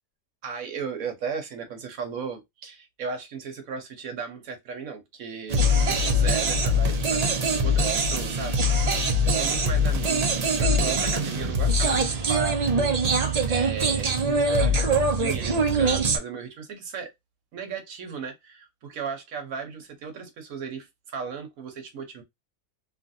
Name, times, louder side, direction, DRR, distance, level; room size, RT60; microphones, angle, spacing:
voice 1, 0.4-17.1 17.5-22.2, right 6 dB, 85° right, 1.2 m, -36 dB
sound 1, 5.5-16.2, right 1 dB, 45° right, 0.5 m, -23 dB
2.9 x 2.5 x 2.5 m
omnidirectional pair, 1.4 m